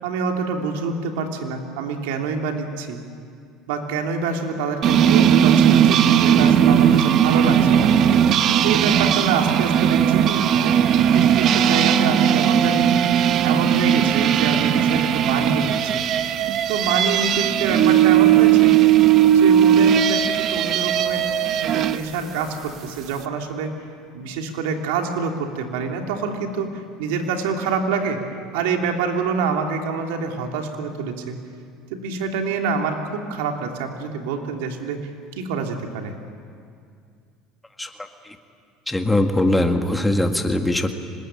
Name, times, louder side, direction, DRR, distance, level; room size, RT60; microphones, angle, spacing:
voice 1, 0.0-3.0 3.7-7.9 8.6-12.9 13.4-16.0 16.7-18.7 19.3-21.2 21.7-23.7 24.1-26.7 27.0-28.2 28.5-31.4 31.9-35.0 35.4-36.1, right 5 dB, 90° right, 3 dB, 3.1 m, -26 dB
sound 1, 4.8-22.0, right 9 dB, 45° right, 0.9 m, -17 dB
voice 2, 38.9-40.9, left 1 dB, 5° left, 5 dB, 1.9 m, -20 dB
25.5 x 20.5 x 9.0 m, 2.3 s
cardioid pair, 130°, 0 cm